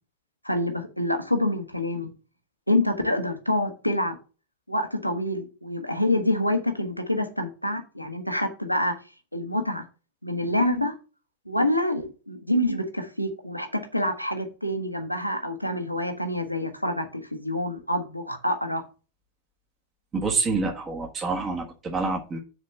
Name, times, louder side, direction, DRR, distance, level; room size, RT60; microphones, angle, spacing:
voice 1, 0.4-2.1 2.7-4.2 4.7-8.9 9.3-9.9 10.2-10.9 11.5-18.8, left 1 dB, 90° left, 1.2 m, -26 dB
voice 2, 20.1-22.4, right 4 dB, 25° right, 1.5 m, -27 dB
6.7 x 4.3 x 6.4 m
figure-of-eight pair, 90°, 0 cm